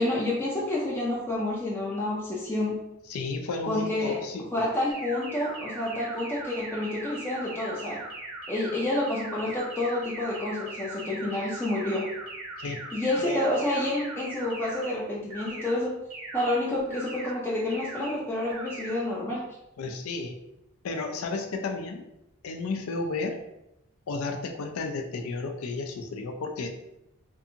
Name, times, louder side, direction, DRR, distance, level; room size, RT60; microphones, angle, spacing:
voice 1, 0.0-2.8 3.7-4.3 4.5-8.0 8.5-12.1 12.9-15.9 16.3-19.5, left 1 dB, 10° left, -5 dB, 0.4 m, -29 dB
voice 2, 3.1-4.7 12.6-12.8 19.8-20.4 20.8-22.0 22.4-23.4 24.1-26.7, left 3 dB, 75° left, 4 dB, 0.4 m, -33 dB
sound 1, 4.9-14.9 15.3-15.7 16.1-16.5 16.9-17.3 17.7-18.1 18.5-18.9, right 2 dB, 80° right, 1.0 m, -40 dB
2.6 x 2.5 x 2.6 m, 0.86 s
head